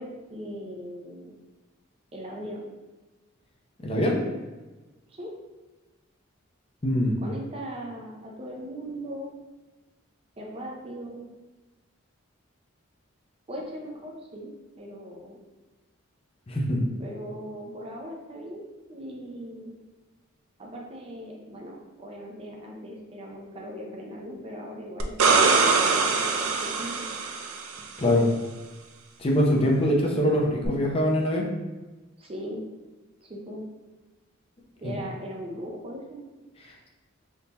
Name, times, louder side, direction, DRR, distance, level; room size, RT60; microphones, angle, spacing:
voice 1, 0.0-1.4 2.1-2.6 5.1-5.3 7.2-9.3 10.4-11.3 13.5-14.5 14.8-15.4 17.0-18.6 18.9-19.8 20.6-26.5 26.8-27.1 32.2-32.6 33.2-33.6 34.8-36.2, equal, 25° right, -1 dB, 0.4 m, -39 dB
voice 2, 3.8-4.2 6.8-7.2 16.5-16.8 28.0-28.3 29.2-31.5 34.8-34.9, equal, 25° left, -1 dB, 0.5 m, -23 dB
sound 1, 25.0-27.8 30.6-30.7, right 4 dB, 90° right, 0.4 m, -23 dB
3.6 x 2.7 x 2.8 m, 1.2 s
head